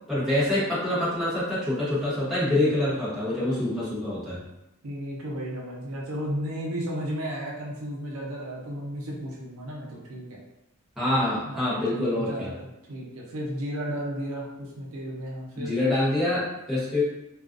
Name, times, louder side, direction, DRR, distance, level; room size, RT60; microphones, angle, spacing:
voice 1, 0.1-4.4 11.0-12.5 15.6-17.0, left 1 dB, ahead, -11 dB, 1.0 m, -26 dB
voice 2, 4.8-10.3 11.2-15.7, equal, 80° right, -3 dB, 0.6 m, -34 dB
2.4 x 2.3 x 2.4 m, 0.93 s
head